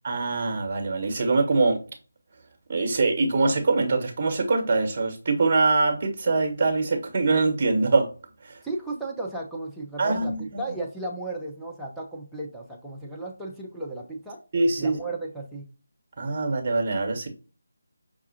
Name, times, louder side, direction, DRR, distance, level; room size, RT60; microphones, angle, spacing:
voice 1, 0.0-1.8 2.7-8.1 8.4-8.6 10.0-10.6 14.5-15.0 16.2-17.3, right 3 dB, 30° right, 1.2 m, -23 dB
voice 2, 8.6-14.4 14.8-15.6, right 2 dB, ahead, 0.6 m, -35 dB
5.7 x 2.4 x 2.8 m
figure-of-eight pair, 155°, 0 cm